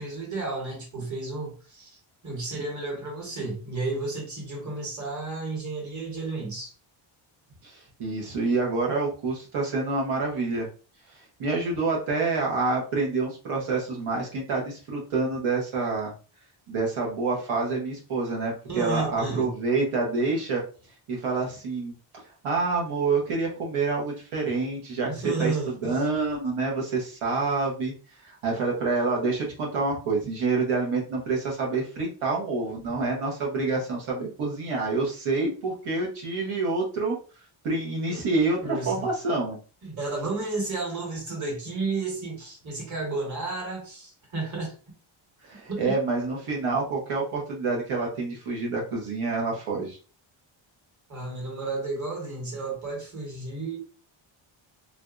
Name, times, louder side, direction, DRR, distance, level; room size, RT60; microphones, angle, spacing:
voice 1, 0.0-2.0 2.2-6.7 18.7-19.5 25.0-26.0 38.1-38.2 38.6-39.1 39.8-44.7 45.7-45.9 51.1-53.8, right 3 dB, 35° right, 1.4 m, -32 dB
voice 2, 7.6-10.7 11.1-16.1 16.7-20.6 21.1-21.9 22.4-25.1 25.4-25.5 25.8-27.9 28.2-37.1 37.6-39.6 45.4-50.0, right 3 dB, 75° right, 1.1 m, -27 dB
3.4 x 2.6 x 2.4 m
wide cardioid pair, 170°, 50 cm